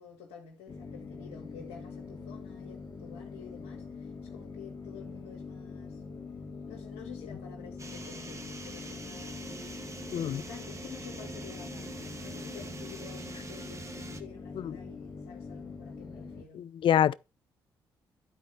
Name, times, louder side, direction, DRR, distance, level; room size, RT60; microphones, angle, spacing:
voice 1, 0.0-6.0 6.7-13.9 14.2-16.7, left 7 dB, 85° left, 2.0 m, -50 dB
sound 1, 0.7-16.4, left 4 dB, 40° left, 2.3 m, -44 dB
sound 2, 7.8-14.2, right 3 dB, 30° right, 1.8 m, -44 dB
voice 2, 16.5-17.1, left 10 dB, 60° left, 0.5 m, -25 dB
12.0 x 4.4 x 5.6 m
supercardioid pair, 50°, 10 cm